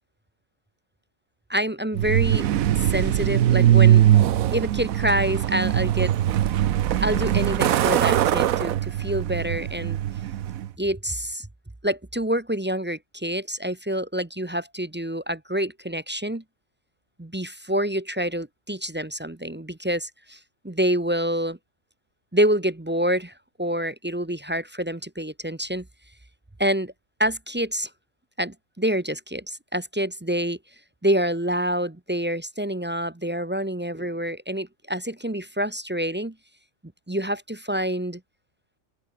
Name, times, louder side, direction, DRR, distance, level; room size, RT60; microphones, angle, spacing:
voice 1, 1.5-2.5 2.8-4.1 4.5-6.1 7.0-10.0 10.8-11.5 11.8-16.4 17.2-20.4 20.6-21.6 22.3-23.3 23.6-25.8 26.6-26.9 27.2-27.9 28.4-30.6 31.0-36.3 37.1-38.2, equal, 10° right, 0.6 m, -27 dB
Truck, 1.9-10.7, right 11 dB, 85° right, 1.2 m, -21 dB
omnidirectional pair, 1.4 m